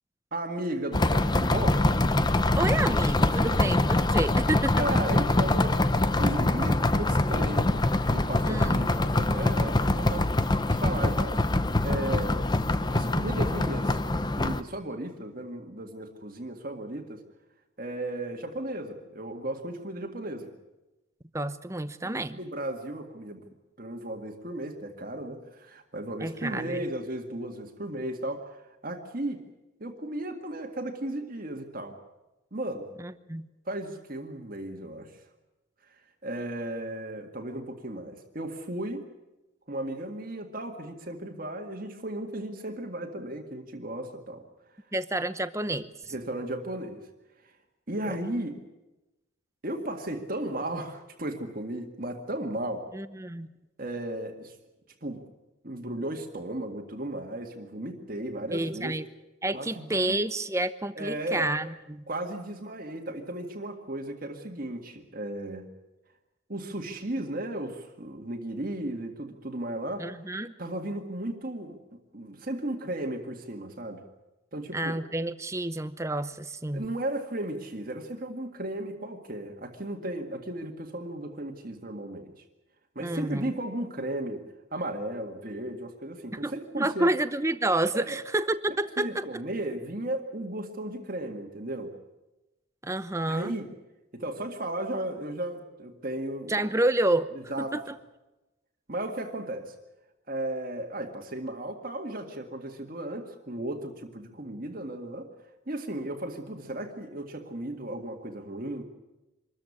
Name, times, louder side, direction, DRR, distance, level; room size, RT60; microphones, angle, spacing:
voice 1, 0.3-1.8 3.3-3.6 4.8-7.7 8.1-11.4 11.8-12.4 12.7-14.0 14.4-17.2 17.8-20.5 22.0-23.5 23.8-29.4 29.8-32.0 32.5-32.9 33.7-35.2 35.9-39.1 39.7-44.4 46.1-47.1 47.4-47.5 47.9-48.6 49.6-52.9 53.8-54.6 55.0-55.2 55.6-59.0 59.5-60.2 61.0-61.5 62.1-65.7 66.5-74.0 74.5-75.0 76.7-82.4 83.0-84.5 84.7-87.1 87.9-88.2 88.7-91.9 93.3-93.7 94.1-96.6 97.3-97.8 98.9-99.7 100.3-105.3 105.7-108.8, right 1 dB, 45° right, 3 dB, 1.9 m, -35 dB
sound 1, 0.9-14.6, left 2 dB, 20° left, 0.7 m, -24 dB
voice 2, 2.6-4.8 8.5-8.8 21.3-22.4 26.2-26.8 33.0-33.5 44.9-45.9 48.1-48.2 52.9-53.5 58.5-59.0 59.4-62.0 70.0-70.5 74.7-76.8 83.0-83.5 86.4-89.2 92.8-93.5 96.5-97.3 97.6-97.9, right 1 dB, 15° right, 13 dB, 0.8 m, -29 dB
25.0 x 14.0 x 9.7 m, 1.0 s
head